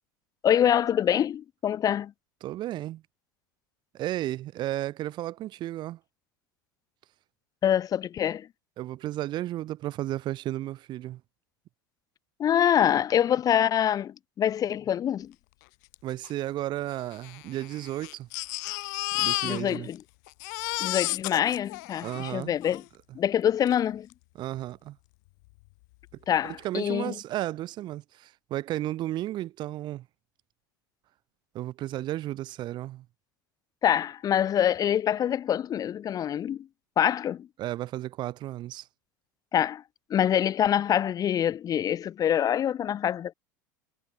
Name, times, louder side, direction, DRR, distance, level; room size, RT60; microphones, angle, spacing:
voice 1, 0.4-2.1 7.6-8.5 12.4-15.3 19.4-20.0 20.8-22.8 23.1-24.1 26.3-27.2 33.8-36.7 37.0-37.5 39.5-39.8 40.1-43.3, left 10 dB, 35° left, 2.0 m, -25 dB
voice 2, 2.4-3.0 3.9-6.0 8.8-11.2 16.0-18.3 19.2-19.9 22.0-22.5 24.4-25.0 26.4-30.1 31.5-33.0 37.6-38.9, right 14 dB, 45° right, 3.9 m, -33 dB
Crying sobbing, 15.9-16.0 16.2-16.3 17.1-20.0 20.3-22.8 23.7-23.8 24.1-24.2, left 27 dB, 60° left, 3.4 m, -32 dB
hypercardioid pair, 80°, 10 cm